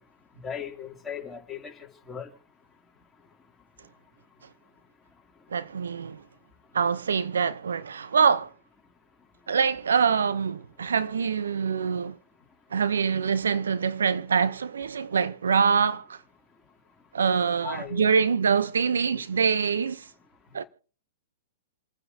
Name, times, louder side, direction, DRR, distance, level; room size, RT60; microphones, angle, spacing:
voice 1, 0.4-1.7 2.1-2.3 17.6-18.1, left 8 dB, 10° left, 2.8 m, -37 dB
voice 2, 5.5-6.2 6.7-8.5 9.5-12.2 12.7-16.2 17.1-20.0 20.5-20.6, right 6 dB, 80° right, 0.7 m, -24 dB
28.0 x 9.6 x 2.8 m
hypercardioid pair, 115°, 0 cm